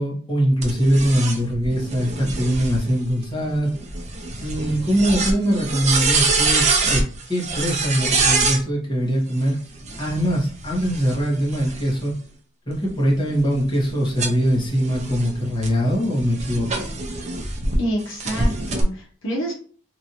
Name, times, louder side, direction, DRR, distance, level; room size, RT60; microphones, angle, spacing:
voice 1, 0.0-3.7 4.4-9.6 10.0-12.1 12.7-16.9, equal, 25° left, -4 dB, 1.1 m, -22 dB
sound 1, 0.6-8.6 9.8-12.1 12.7-17.8 18.2-18.8, right 3 dB, 35° right, 0.5 m, -25 dB
voice 2, 17.7-19.5, equal, 70° left, -1 dB, 0.8 m, -27 dB
3.0 x 2.6 x 2.7 m, 0.43 s
head